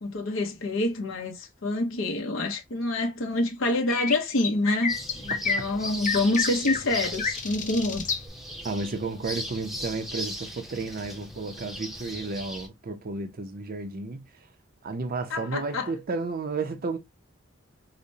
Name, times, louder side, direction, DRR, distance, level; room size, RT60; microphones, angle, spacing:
voice 1, 0.0-8.1 15.3-15.9, left 2 dB, 70° left, 0.8 m, -27 dB
sound 1, 3.9-8.2, left 5 dB, 40° left, 0.7 m, -29 dB
sound 2, 4.9-12.7, equal, ahead, 0.7 m, -37 dB
voice 2, 8.6-14.5 14.8-17.0, right 3 dB, 45° right, 0.6 m, -32 dB
4.9 x 2.1 x 2.7 m
head